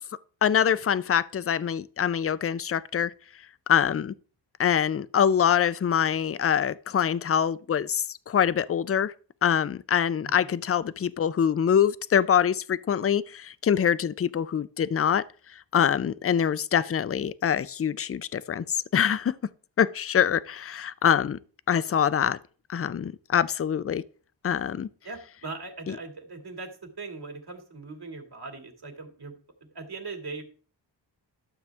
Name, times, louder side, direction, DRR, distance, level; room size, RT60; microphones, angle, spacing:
voice 1, 0.4-3.1 3.7-4.1 4.6-9.1 9.4-15.3 15.7-19.5 19.8-21.4 21.7-22.4 22.7-24.0 24.4-24.9 25.9-26.0, left 8 dB, 35° left, 0.4 m, -24 dB
voice 2, 10.2-10.6 25.0-29.3 29.7-30.4, right 3 dB, 55° right, 2.4 m, -40 dB
12.0 x 7.3 x 3.5 m
wide cardioid pair, 100°, 45 cm